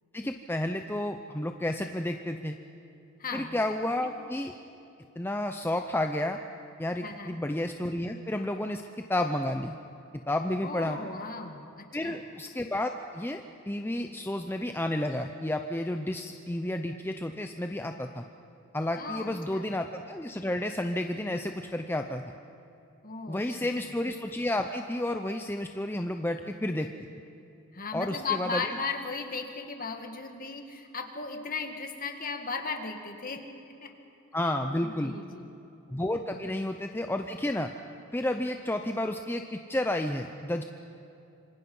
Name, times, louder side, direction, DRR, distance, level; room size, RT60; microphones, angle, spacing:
voice 1, 0.1-2.6 3.3-4.5 5.2-6.4 6.8-8.8 9.1-9.8 10.3-11.0 11.9-18.2 18.7-22.2 23.3-26.9 27.9-28.6 34.3-35.1 35.9-37.7 38.1-40.6, left 1 dB, 10° left, 5 dB, 0.6 m, -31 dB
voice 2, 3.2-3.6 4.0-4.1 7.0-7.4 10.6-12.2 19.0-19.6 23.0-23.9 27.7-33.5 33.8-33.9 34.8-35.6, left 4 dB, 40° left, 4 dB, 2.0 m, -36 dB
26.5 x 25.5 x 5.5 m, 2.8 s
head